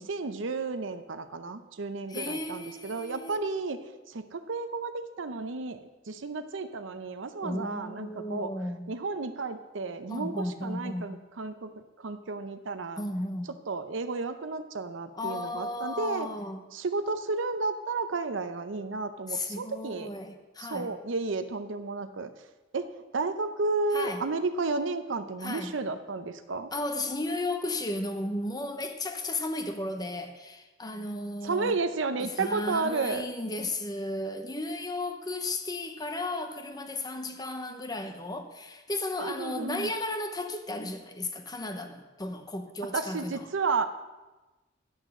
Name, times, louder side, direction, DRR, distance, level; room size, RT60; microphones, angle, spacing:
voice 1, 0.0-3.8 4.1-5.8 6.1-8.5 8.9-11.7 12.0-13.0 13.7-16.3 16.7-20.1 20.6-22.3 22.7-22.9 23.1-26.7 31.4-33.3 39.2-39.9 42.9-43.9, right 3 dB, 70° right, 10 dB, 0.6 m, -32 dB
voice 2, 2.1-3.4 7.4-8.9 10.1-11.2 13.0-13.5 15.1-16.6 19.3-21.0 23.9-24.2 25.4-25.8 26.7-31.8 32.2-43.5, left 2 dB, 20° left, 6 dB, 0.8 m, -34 dB
11.0 x 6.2 x 6.6 m, 1.1 s
head